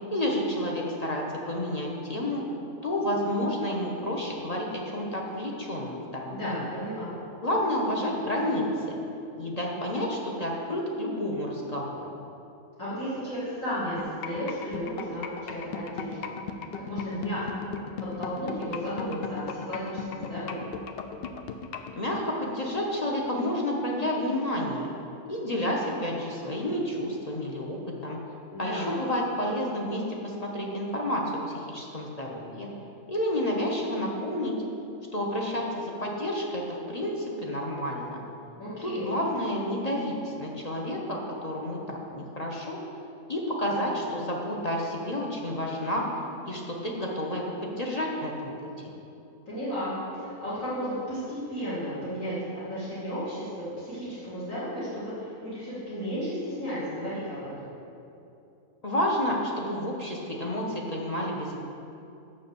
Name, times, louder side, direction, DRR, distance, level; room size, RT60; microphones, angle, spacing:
voice 1, 0.1-2.4 2.8-6.7 7.4-8.9 9.4-12.1 21.9-24.9 25.3-28.2 28.6-32.7 33.1-34.5 35.1-38.2 38.8-42.8 43.3-46.1 46.4-48.9 58.8-61.6, left 1 dB, 35° left, -2 dB, 0.7 m, -30 dB
voice 2, 6.3-7.1 12.8-16.3 16.7-17.7 18.0-20.7 28.5-29.0 38.6-39.1 49.5-57.5, equal, 55° left, -12 dB, 2.4 m, -34 dB
sound 1, 14.0-21.9, left 7 dB, 85° left, 0.5 m, -35 dB
6.8 x 5.8 x 6.9 m, 2.8 s
omnidirectional pair, 1.6 m